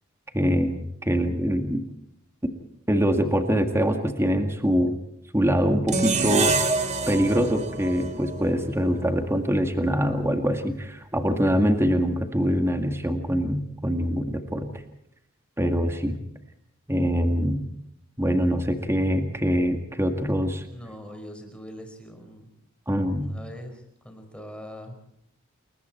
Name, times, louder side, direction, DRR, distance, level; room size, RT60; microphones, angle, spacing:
voice 1, 0.3-1.8 2.9-5.0 5.3-6.6 7.1-14.7 15.6-16.2 16.9-17.6 18.2-20.6 22.9-23.3, equal, 10° right, 6 dB, 2.0 m, -24 dB
sound 1, 5.9-9.1, right 4 dB, 35° right, 2.5 m, -27 dB
voice 2, 20.7-22.5 23.2-24.9, equal, 5° left, 4 dB, 5.1 m, -42 dB
29.5 x 22.0 x 4.5 m, 0.72 s
head